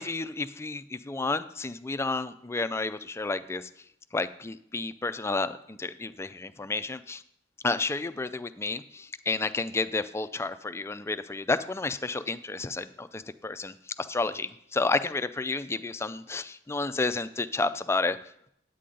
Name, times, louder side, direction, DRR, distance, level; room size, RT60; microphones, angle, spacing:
voice 1, 0.0-3.7 4.1-7.2 7.6-18.2, left 3 dB, 15° left, 12 dB, 0.3 m, -31 dB
9.9 x 8.5 x 3.8 m, 0.70 s
head